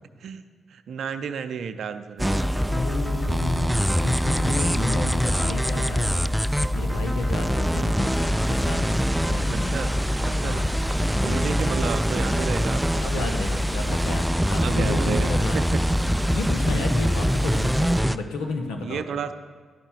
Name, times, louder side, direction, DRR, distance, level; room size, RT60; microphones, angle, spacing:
voice 1, 0.7-2.5 4.9-5.0 9.5-10.0 10.2-10.6 11.2-13.3 13.9-14.0 14.6-15.6 18.8-19.3, right 7 dB, 70° right, 11 dB, 0.4 m, -32 dB
sound 1, 2.2-18.0, left 1 dB, 50° left, 2.8 m, -53 dB
sound 2, 2.2-18.2, equal, 5° right, 0.3 m, -23 dB
voice 2, 2.7-10.0 10.4-10.7 11.2-11.7 13.0-15.8 16.3-19.2, left 3 dB, 85° left, 4 dB, 0.9 m, -32 dB
sound 3, 9.9-16.8, right 3 dB, 50° right, 0.8 m, -46 dB
11.5 x 5.5 x 5.8 m, 1.5 s
hypercardioid pair, 40°, 0 cm